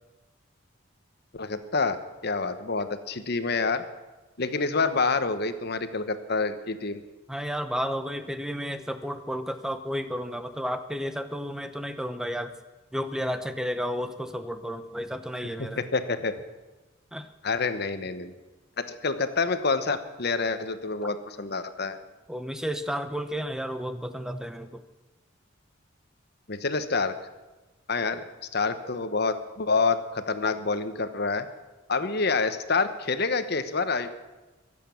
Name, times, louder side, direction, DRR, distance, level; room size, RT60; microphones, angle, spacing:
voice 1, 1.3-2.0 2.2-3.9 4.4-7.0 15.6-16.3 17.4-18.3 18.8-22.0 26.5-27.2 27.9-28.3 28.5-31.5 31.9-34.1, left 4 dB, 55° left, 11 dB, 1.1 m, -27 dB
voice 2, 7.3-12.5 12.9-15.8 17.1-17.3 22.3-24.8, equal, 5° right, 10 dB, 0.9 m, -32 dB
22.5 x 8.4 x 7.1 m, 1.1 s
head